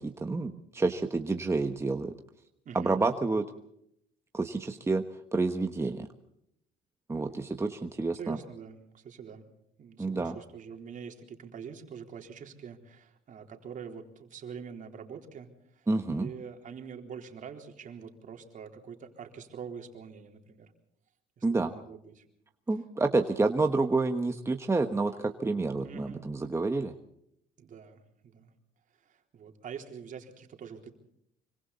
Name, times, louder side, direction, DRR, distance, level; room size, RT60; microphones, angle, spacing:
voice 1, 0.0-2.1 2.7-3.4 4.3-5.0 5.3-6.1 7.1-8.4 10.0-10.3 15.9-16.3 21.4-21.7 22.7-26.9, right 3 dB, 15° right, 5 dB, 1.2 m, -29 dB
voice 2, 2.6-3.0 8.1-9.5 9.8-15.5 15.7-15.9 16.1-20.7 21.4-22.2 23.1-23.2 25.8-26.2 27.6-28.5 29.0-30.9, right 7 dB, 50° right, 3 dB, 3.9 m, -45 dB
25.5 x 24.5 x 4.2 m, 0.72 s
cardioid pair, 110°, 17 cm